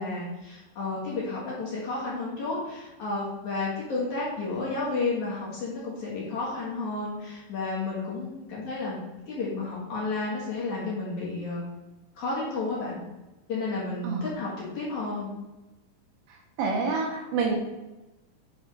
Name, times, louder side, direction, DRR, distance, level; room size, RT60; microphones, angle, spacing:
voice 1, 0.0-9.0 9.3-11.7 12.2-13.0 13.5-15.3, left 3 dB, 65° left, -6 dB, 2.0 m, -31 dB
voice 2, 16.6-17.6, right 4 dB, 75° right, 1 dB, 2.3 m, -27 dB
7.5 x 3.5 x 5.2 m, 1.1 s
omnidirectional pair, 5.3 m